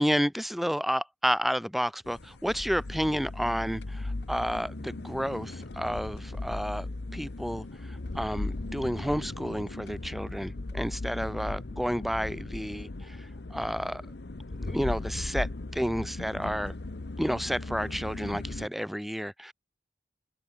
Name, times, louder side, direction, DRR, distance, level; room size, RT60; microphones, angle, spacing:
voice 1, 0.0-14.0 14.6-16.7 17.2-19.5, equal, ahead, 0.7 m, -31 dB
sound 1, 2.0-18.7, left 2 dB, 70° left, 0.9 m, -37 dB
open air
head